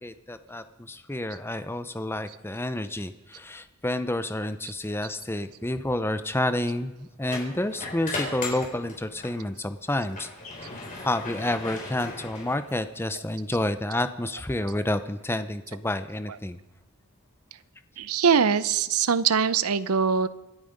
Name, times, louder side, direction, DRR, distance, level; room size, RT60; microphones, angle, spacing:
voice 1, 0.0-10.3 11.0-16.6, left 1 dB, 10° left, 11 dB, 0.7 m, -29 dB
sound 1, 7.2-9.4 9.8-13.0, left 3 dB, 35° left, 4.5 m, -37 dB
voice 2, 18.0-20.3, right 6 dB, 85° right, 16 dB, 0.7 m, -22 dB
26.5 x 9.3 x 5.2 m, 1.0 s
head